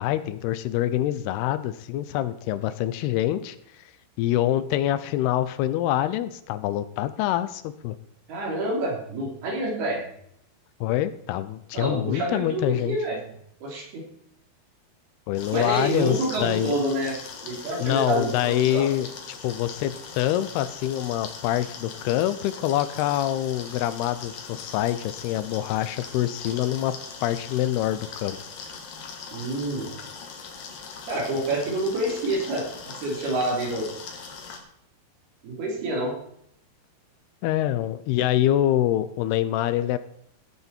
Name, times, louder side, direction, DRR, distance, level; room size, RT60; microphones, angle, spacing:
voice 1, 0.0-3.6 4.2-8.0 10.8-13.0 15.3-16.7 17.8-19.1 19.4-28.4 37.4-40.0, left 13 dB, 80° left, 13 dB, 2.7 m, -25 dB
voice 2, 8.3-10.0 11.7-13.2 13.6-14.0 15.5-17.1 17.4-18.9 29.3-29.9 31.1-33.9 35.4-36.2, right 1 dB, 70° right, -2 dB, 5.5 m, -27 dB
sound 1, 15.4-34.6, left 5 dB, 60° left, 3.2 m, -41 dB
16.5 x 8.5 x 4.4 m, 0.71 s
omnidirectional pair, 4.6 m